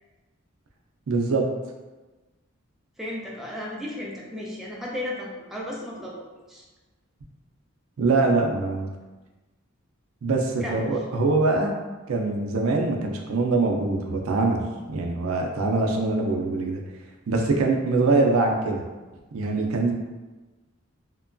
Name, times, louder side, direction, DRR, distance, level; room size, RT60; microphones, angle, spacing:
voice 1, 1.1-1.5 8.0-8.9 10.2-11.7 12.1-16.8 17.3-18.8 19.3-19.9, right 3 dB, 80° right, 1 dB, 0.4 m, -23 dB
voice 2, 3.0-6.6 10.6-10.9, left 1 dB, ahead, -4 dB, 0.3 m, -34 dB
2.9 x 2.2 x 2.5 m, 1.2 s
head